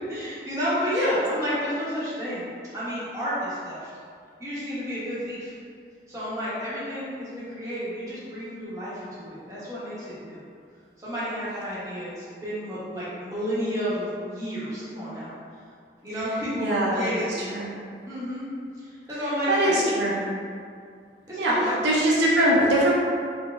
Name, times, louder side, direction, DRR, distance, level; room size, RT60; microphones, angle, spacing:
voice 1, 0.1-3.9 4.4-5.5 6.1-10.4 11.0-15.3 16.0-17.3 18.1-18.5 18.8-20.3 21.3-21.8, equal, 15° right, -10 dB, 0.8 m, -31 dB
voice 2, 16.6-17.7 19.5-20.2 21.4-22.9, right 1 dB, 70° right, -4 dB, 0.4 m, -22 dB
3.8 x 2.0 x 2.3 m, 2.2 s
head